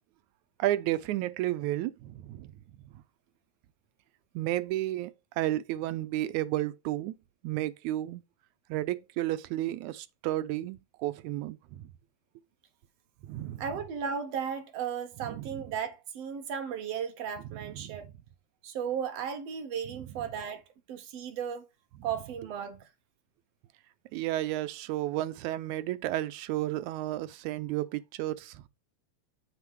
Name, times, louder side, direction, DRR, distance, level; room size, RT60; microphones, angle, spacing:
voice 1, 0.6-2.5 4.4-7.2 7.4-8.2 8.7-11.8 13.2-13.6 15.3-15.4 17.5-18.0 24.1-28.7, right 15 dB, 90° right, 2.0 m, -32 dB
voice 2, 13.6-18.1 18.6-21.7 22.0-22.9, right 7 dB, 65° right, 2.0 m, -35 dB
7.1 x 4.5 x 4.7 m
omnidirectional pair, 3.3 m